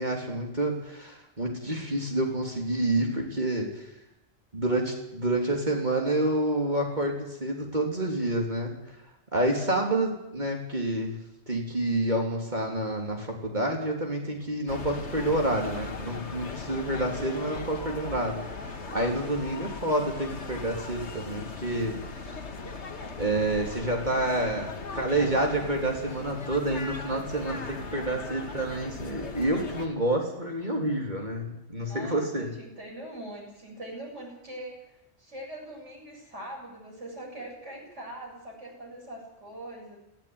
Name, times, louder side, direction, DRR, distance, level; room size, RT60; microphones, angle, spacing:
voice 1, 0.0-3.8 4.5-8.7 9.3-11.2 11.5-18.4 18.9-22.0 22.3-22.4 23.2-32.5, right 1 dB, 40° right, 1 dB, 3.7 m, -28 dB
sound 1, 14.7-29.9, left 4 dB, 80° left, 2.0 m, -39 dB
voice 2, 17.4-17.9 19.2-19.5 27.7-28.1 31.7-40.0, right 1 dB, 90° right, -1 dB, 8.4 m, -43 dB
19.0 x 16.5 x 9.7 m, 0.88 s
omnidirectional pair, 1.2 m